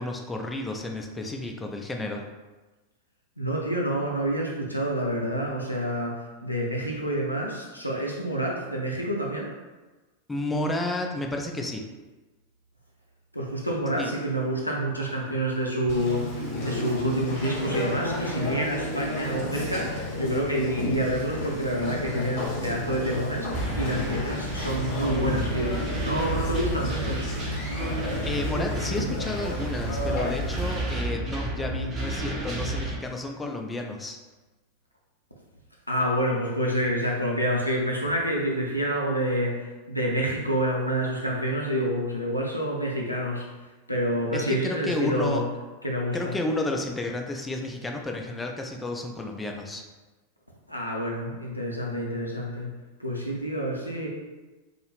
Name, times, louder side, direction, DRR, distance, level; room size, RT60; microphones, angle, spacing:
voice 1, 0.0-2.3 10.3-11.9 14.0-14.1 28.3-34.2 44.3-45.4 46.1-49.8, left 2 dB, 10° left, 2 dB, 0.3 m, -31 dB
voice 2, 3.4-9.5 13.3-27.3 35.9-43.5 43.9-45.4 45.8-46.3 50.7-52.7 53.0-54.1, equal, 90° left, -2 dB, 0.4 m, -28 dB
Conversation, 15.9-30.7, left 1 dB, 45° left, 0.7 m, -32 dB
sound 1, 23.5-33.0, right 1 dB, 25° right, 0.6 m, -31 dB
2.2 x 2.0 x 3.1 m, 1.2 s
figure-of-eight pair, 90°, 0 cm